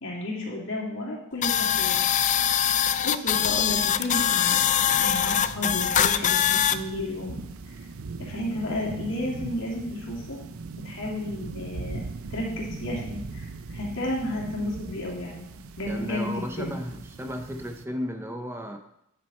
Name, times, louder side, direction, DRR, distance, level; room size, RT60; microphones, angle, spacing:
voice 1, 0.0-2.0 3.0-4.6 4.9-7.4 8.2-10.4 10.8-15.5 15.8-16.8, left 1 dB, 65° left, -3 dB, 2.7 m, -32 dB
sound 1, 1.4-6.8, left 9 dB, 35° left, 0.3 m, -23 dB
sound 2, 5.3-17.8, right 3 dB, 85° right, 0.6 m, -40 dB
voice 2, 15.9-18.8, equal, 10° right, 5 dB, 0.6 m, -34 dB
9.6 x 7.5 x 4.3 m, 0.77 s
head